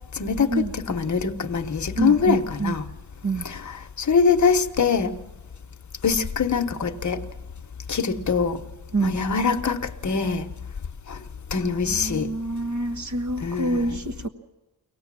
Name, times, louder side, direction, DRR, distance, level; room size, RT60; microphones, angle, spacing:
voice 1, 0.1-2.9 3.4-5.1 6.0-7.2 7.9-8.6 9.0-10.5 11.1-11.2 11.5-12.3 13.4-14.0, left 5 dB, 45° left, 1.1 m, -23 dB
voice 2, 1.9-2.8 3.2-3.5 8.9-9.1 11.8-14.3, right 2 dB, 45° right, 1.3 m, -27 dB
24.5 x 18.0 x 7.5 m
wide cardioid pair, 155°, 41 cm